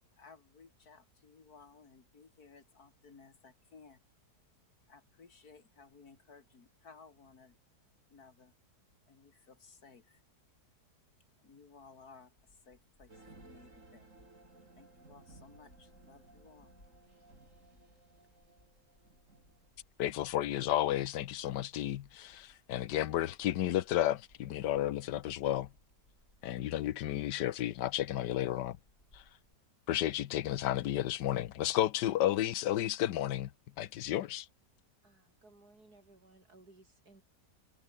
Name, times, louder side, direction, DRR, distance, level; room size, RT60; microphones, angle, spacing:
voice 1, 0.1-4.0 4.9-7.6 8.1-8.5 9.0-10.3 11.4-14.1 14.8-16.7, left 5 dB, 60° left, 2.8 m, -58 dB
sound 1, 12.4-29.5, left 1 dB, 40° left, 8.1 m, -67 dB
sound 2, 13.1-19.7, right 3 dB, 45° right, 4.4 m, -59 dB
voice 2, 20.0-25.7 26.4-28.8 29.1-29.2 29.9-33.5 33.8-34.4, left 13 dB, 90° left, 1.4 m, -32 dB
voice 3, 35.0-37.2, right 2 dB, 65° right, 6.3 m, -60 dB
omnidirectional pair, 1.8 m